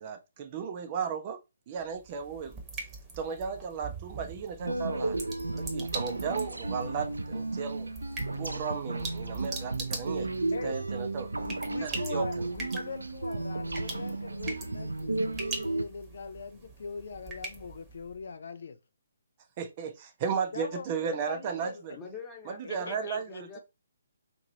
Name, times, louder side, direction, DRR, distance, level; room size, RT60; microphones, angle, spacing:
voice 1, 0.0-1.4 1.7-2.6 3.2-5.2 5.5-7.9 8.3-10.3 10.6-11.3 11.8-12.5 19.6-22.0 22.5-23.6, right 6 dB, 35° right, 0.5 m, -35 dB
sound 1, 1.8-18.2, right 3 dB, 15° right, 1.0 m, -43 dB
sound 2, 4.6-15.8, right 2 dB, 80° right, 0.5 m, -33 dB
voice 2, 11.4-18.8 20.5-22.0 22.6-23.4, left 5 dB, 60° left, 0.4 m, -42 dB
voice 3, 22.0-23.6, left 6 dB, 15° left, 1.0 m, -45 dB
2.9 x 2.6 x 4.0 m
figure-of-eight pair, 140°, 0 cm